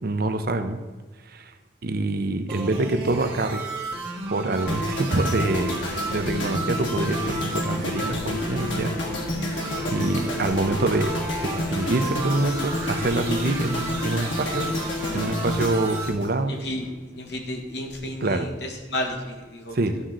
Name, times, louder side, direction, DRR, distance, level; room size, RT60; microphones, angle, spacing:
voice 1, 0.0-0.8 1.3-1.5 1.8-3.6 4.3-9.0 9.9-14.7 15.1-16.6 18.0-18.5 19.7-20.0, right 2 dB, 50° right, 8 dB, 0.7 m, -26 dB
sound 1, 2.5-16.1, right 2 dB, 25° right, 2.1 m, -34 dB
sound 2, 4.7-16.9 17.1-17.4, left 1 dB, 85° left, 1.8 m, -29 dB
voice 2, 16.5-16.9 17.1-19.8, left 1 dB, 60° left, 2 dB, 1.5 m, -32 dB
11.5 x 3.8 x 7.4 m, 1.3 s
head